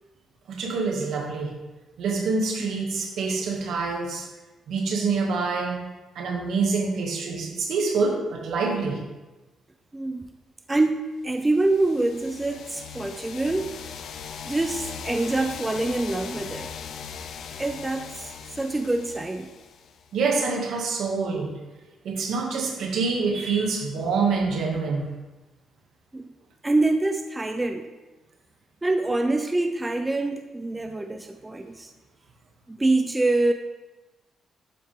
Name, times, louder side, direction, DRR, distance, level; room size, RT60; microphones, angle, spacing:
voice 1, 0.5-1.5 2.0-4.3 4.7-5.8 6.1-9.0 20.1-21.5 22.0-25.1, right 4 dB, 70° right, 0 dB, 2.4 m, -26 dB
voice 2, 9.9-10.4 10.7-13.7 14.4-16.7 17.6-19.5 26.1-26.2 26.6-27.9 28.8-31.9 32.7-33.5, right 2 dB, 15° right, 6 dB, 0.6 m, -25 dB
sound 1, 11.4-20.2, left 7 dB, 65° left, 0.8 m, -39 dB
12.0 x 8.8 x 3.8 m, 1.1 s
cardioid pair, 145°, 0 cm